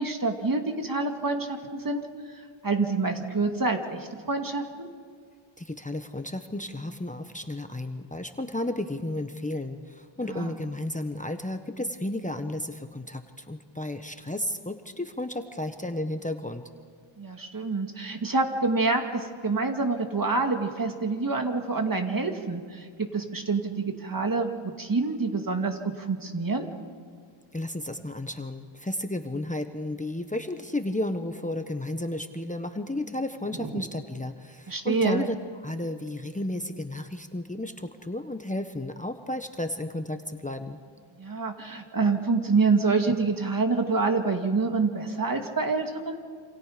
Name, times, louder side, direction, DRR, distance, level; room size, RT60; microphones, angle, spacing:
voice 1, 0.0-2.0 2.6-4.9 10.3-10.5 17.2-26.7 33.6-33.8 34.7-35.3 41.2-46.2, right 3 dB, 45° right, 4 dB, 2.3 m, -27 dB
voice 2, 5.6-16.6 27.5-35.4 35.6-40.8, left 1 dB, 15° left, 7 dB, 1.2 m, -33 dB
27.5 x 27.0 x 5.2 m, 2.1 s
wide cardioid pair, 75°, 48 cm